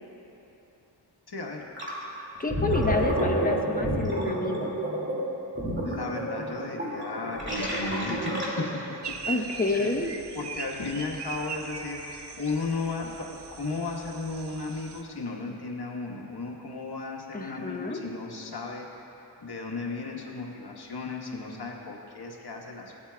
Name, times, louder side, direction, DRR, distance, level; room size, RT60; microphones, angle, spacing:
voice 1, 1.3-1.6 5.8-9.0 9.2-9.5 9.7-10.0 10.3-18.9 19.4-22.9, left 3 dB, 60° left, -1 dB, 1.4 m, -35 dB
Gurgling, 1.8-2.0 2.4-8.8, right 1 dB, 25° right, 2.2 m, -29 dB
voice 2, 2.4-4.8 9.3-10.1 17.3-18.0, left 3 dB, 20° left, 2 dB, 0.9 m, -29 dB
sound 1, 9.0-15.0, right 5 dB, 65° right, 0.6 m, -40 dB
17.0 x 8.6 x 2.3 m, 3.0 s
wide cardioid pair, 65°, 44 cm